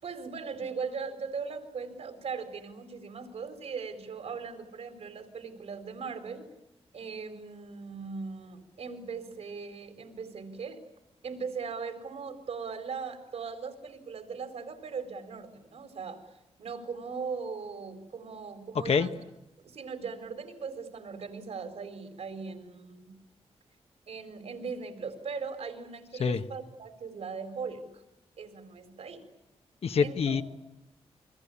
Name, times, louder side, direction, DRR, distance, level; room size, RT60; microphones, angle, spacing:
voice 1, 0.0-6.5 6.9-10.8 11.2-16.2 16.6-19.1 19.6-23.1 24.1-28.0 28.4-29.2 30.0-30.4, right 5 dB, 70° right, 8 dB, 4.5 m, -39 dB
voice 2, 29.8-30.4, left 6 dB, 65° left, 8 dB, 1.5 m, -25 dB
29.5 x 23.5 x 8.7 m, 0.89 s
wide cardioid pair, 105°, 11 cm